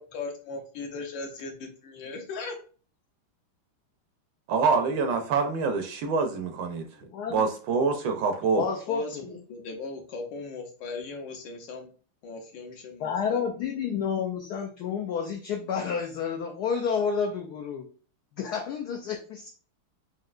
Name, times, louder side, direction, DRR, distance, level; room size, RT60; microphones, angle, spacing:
voice 1, 0.0-2.6 8.9-11.9 12.2-13.6, left 3 dB, 70° left, 3 dB, 1.3 m, -38 dB
voice 2, 4.5-6.9 7.3-8.7, right 4 dB, 70° right, 6 dB, 1.2 m, -25 dB
voice 3, 8.6-9.2 13.0-17.8 18.4-19.5, left 6 dB, 85° left, 3 dB, 0.8 m, -30 dB
5.3 x 2.7 x 2.4 m, 0.39 s
omnidirectional pair, 2.3 m